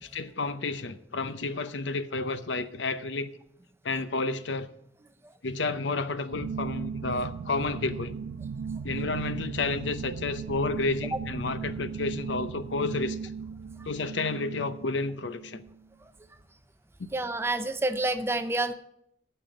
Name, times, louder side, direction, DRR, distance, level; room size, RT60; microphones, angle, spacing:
voice 1, 0.0-3.3 3.8-4.7 5.4-8.1 8.8-13.3 13.9-15.6 17.0-17.1, left 3 dB, 85° left, 0.7 m, -31 dB
sound 1, 6.3-15.8, right 6 dB, 85° right, 0.3 m, -37 dB
voice 2, 17.1-18.7, right 2 dB, 15° right, 0.5 m, -28 dB
9.0 x 6.8 x 7.7 m
head